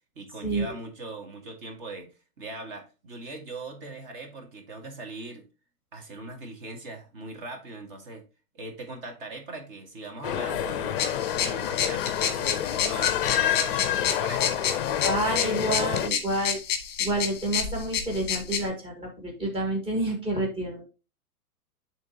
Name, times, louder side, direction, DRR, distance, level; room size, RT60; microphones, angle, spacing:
voice 1, 0.2-2.1 2.4-5.5 5.9-8.2 8.5-11.0 11.3-14.6, right 2 dB, 35° right, 1.9 m, -40 dB
sound 1, 10.2-16.1, left 10 dB, 35° left, 0.5 m, -28 dB
sound 2, 11.0-18.7, left 8 dB, 20° left, 1.4 m, -30 dB
voice 2, 15.0-16.6 17.0-20.8, right 2 dB, 10° right, 1.7 m, -29 dB
10.5 x 3.7 x 2.8 m
hypercardioid pair, 130°, 46 cm